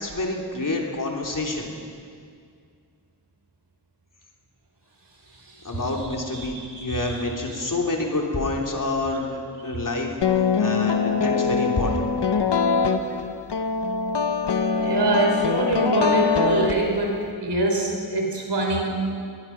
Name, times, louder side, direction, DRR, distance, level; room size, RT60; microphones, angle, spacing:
voice 1, 0.0-1.7 5.6-10.1 10.6-12.1, left 2 dB, 50° left, 0 dB, 3.4 m, -27 dB
voice 2, 6.5-7.2 14.7-19.0, right 2 dB, 75° right, 1 dB, 4.5 m, -24 dB
sound 1, 10.2-17.3, left 5 dB, 80° left, 1.0 m, -23 dB
21.5 x 20.5 x 6.0 m, 2.2 s
wide cardioid pair, 85°, 41 cm